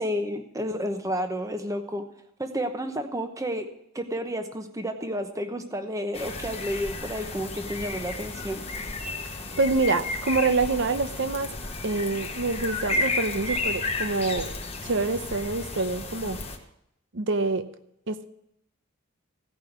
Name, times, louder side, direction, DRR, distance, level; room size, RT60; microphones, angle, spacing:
voice 1, 0.0-2.0 2.4-3.6 3.9-8.6, equal, 15° right, 7 dB, 0.9 m, -31 dB
sound 1, 6.1-16.6, left 3 dB, 30° left, 1.0 m, -33 dB
voice 2, 9.3-11.5 11.8-14.5 14.8-16.4 17.1-17.6 18.1-18.2, right 3 dB, 60° right, 11 dB, 0.7 m, -26 dB
15.5 x 5.5 x 7.9 m, 0.80 s
head